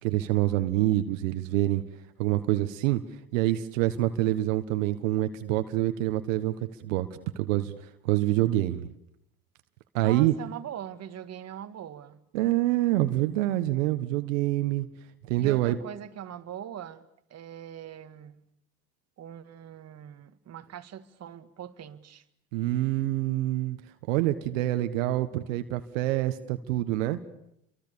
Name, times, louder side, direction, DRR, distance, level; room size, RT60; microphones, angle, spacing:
voice 1, 0.0-1.8 2.2-3.0 3.3-6.5 6.8-7.7 8.0-8.9 9.9-10.3 12.3-14.9 15.2-15.8 22.5-23.8 24.1-27.2, right 15 dB, 75° right, 1.5 m, -26 dB
voice 2, 10.0-12.2 15.4-17.0 17.3-18.4 19.2-22.2, right 10 dB, 40° right, 2.0 m, -41 dB
30.0 x 24.0 x 7.1 m
hypercardioid pair, 75°, 39 cm